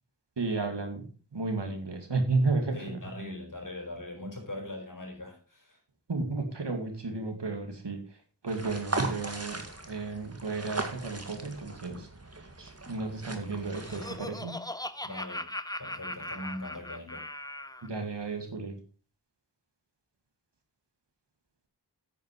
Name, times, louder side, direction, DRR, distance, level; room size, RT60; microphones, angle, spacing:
voice 1, 0.4-1.1 1.3-3.0 6.1-8.0 8.4-9.6 9.9-12.1 12.6-14.6 17.8-18.8, right 3 dB, 75° right, 2.3 m, -32 dB
voice 2, 2.7-5.8 15.0-15.5 15.8-17.3, left 1 dB, 50° left, 4.8 m, -41 dB
sound 1, 8.5-14.2, right 2 dB, 35° right, 2.0 m, -38 dB
Laughter, 13.4-17.9, left 1 dB, 10° left, 0.8 m, -39 dB
9.4 x 8.9 x 4.7 m
wide cardioid pair, 40°, 42 cm